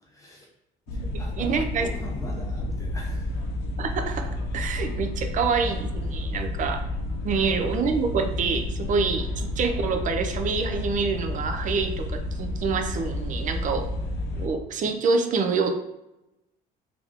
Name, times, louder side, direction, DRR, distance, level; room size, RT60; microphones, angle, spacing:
voice 1, 0.0-0.5 0.9-3.3 7.3-7.4, left 1 dB, 20° left, -2 dB, 0.9 m, -41 dB
sound 1, 0.9-14.5, left 1 dB, 85° left, 0.6 m, -30 dB
voice 2, 1.4-1.9 3.8-6.8 7.2-13.9 14.4-15.8, right 5 dB, 50° right, 6 dB, 0.6 m, -26 dB
3.5 x 3.4 x 3.5 m, 0.90 s
cardioid pair, 110°, 17 cm